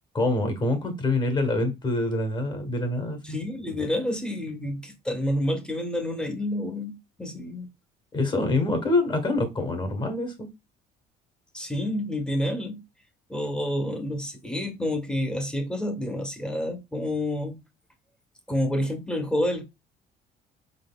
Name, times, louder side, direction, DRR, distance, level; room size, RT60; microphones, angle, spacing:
voice 1, 0.1-3.4 8.1-10.5, left 2 dB, 25° left, 1.3 m, -25 dB
voice 2, 3.2-7.7 11.5-12.8 13.3-17.5 18.5-19.7, left 1 dB, 5° left, 1.1 m, -29 dB
4.6 x 4.0 x 2.3 m
cardioid pair, 110°, 17 cm